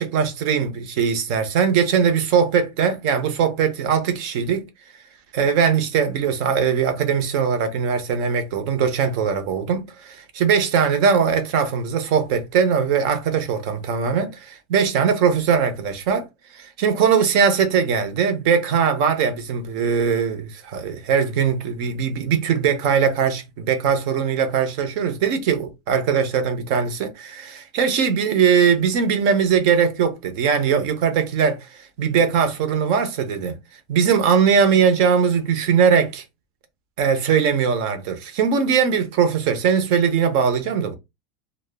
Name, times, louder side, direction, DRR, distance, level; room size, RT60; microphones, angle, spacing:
voice 1, 0.0-4.6 5.3-16.2 16.5-33.6 33.9-36.2 37.0-40.9, right 6 dB, 55° right, 0.6 m, -20 dB
2.1 x 2.0 x 3.3 m
supercardioid pair, 155°, 4 cm